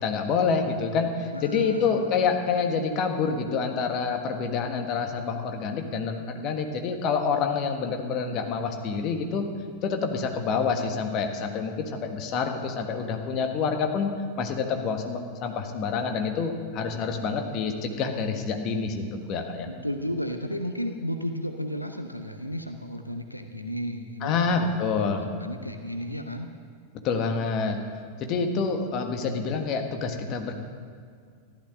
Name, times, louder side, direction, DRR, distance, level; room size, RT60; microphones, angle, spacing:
voice 1, 0.0-9.4 9.8-14.1 14.4-19.7 24.2-25.3 27.0-27.8 28.2-30.5, left 5 dB, 35° left, 4 dB, 1.5 m, -27 dB
voice 2, 1.3-2.1 19.6-26.5, equal, 90° left, 6 dB, 0.7 m, -33 dB
14.5 x 11.5 x 6.3 m, 2.1 s
figure-of-eight pair, 90°, 0 cm